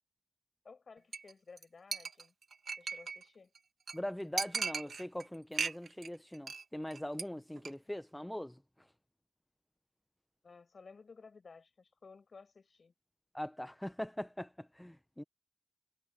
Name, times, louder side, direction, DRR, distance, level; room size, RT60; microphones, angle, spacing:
voice 1, 0.6-2.3 2.8-3.5 7.8-7.9 10.4-12.9, left 4 dB, 45° left, 5.7 m, -56 dB
Chink clink, 1.1-1.6 1.9-3.2 3.6-3.7 3.9-4.0 4.4-5.2 5.5-6.1 6.3-6.6 6.9-7.2 7.6-7.7, right 5 dB, 60° right, 1.2 m, -37 dB
voice 2, 3.9-8.9 13.3-15.2, left 1 dB, 5° left, 0.5 m, -41 dB
wide cardioid pair, 165°, 0 cm